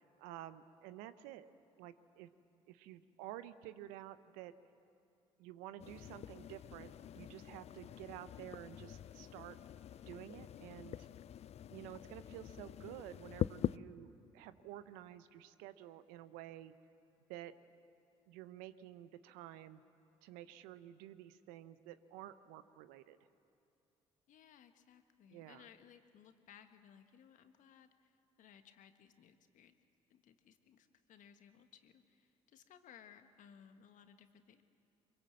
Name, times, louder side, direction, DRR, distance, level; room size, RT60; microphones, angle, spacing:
voice 1, 0.2-1.5 1.8-2.3 2.7-4.5 5.4-9.6 10.1-11.1 11.7-16.7 17.3-17.5 18.3-19.8 20.2-23.2 25.3-25.7, right 13 dB, 75° right, 13 dB, 0.8 m, -51 dB
sound 1, 5.8-13.8, left 10 dB, 45° left, 0.5 m, -44 dB
voice 2, 24.3-27.9 28.4-29.7 30.1-34.6, left 8 dB, 60° left, 8 dB, 1.5 m, -61 dB
23.5 x 22.5 x 7.7 m, 2.5 s
hypercardioid pair, 50°, 15 cm